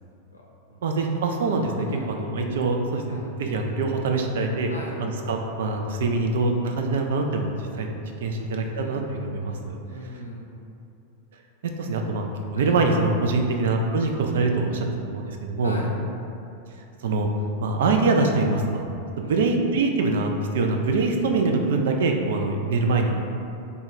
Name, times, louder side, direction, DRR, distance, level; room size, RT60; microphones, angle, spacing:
voice 1, 0.8-4.7 5.0-7.9 8.2-9.8 11.8-12.3 12.5-15.8 17.0-17.3 17.6-18.9 19.2-23.3, right 3 dB, 60° right, 3 dB, 0.4 m, -24 dB
voice 2, 1.5-2.1 3.1-3.3 4.7-5.0 8.4-9.1 9.9-10.6 12.6-12.8 15.6-15.9 19.2-19.5, left 1 dB, 80° left, -2 dB, 0.5 m, -40 dB
3.4 x 2.2 x 4.0 m, 2.8 s
figure-of-eight pair, 90°, 0 cm